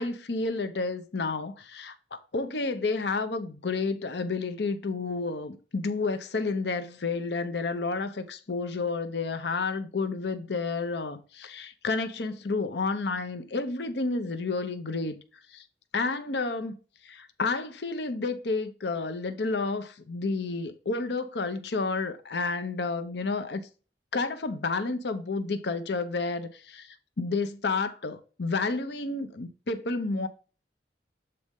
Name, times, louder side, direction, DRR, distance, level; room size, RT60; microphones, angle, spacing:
voice 1, 0.0-15.2 15.5-15.6 15.9-16.8 17.0-23.6 24.1-30.3, left 3 dB, 70° left, 0.8 m, -30 dB
7.7 x 4.2 x 3.6 m
head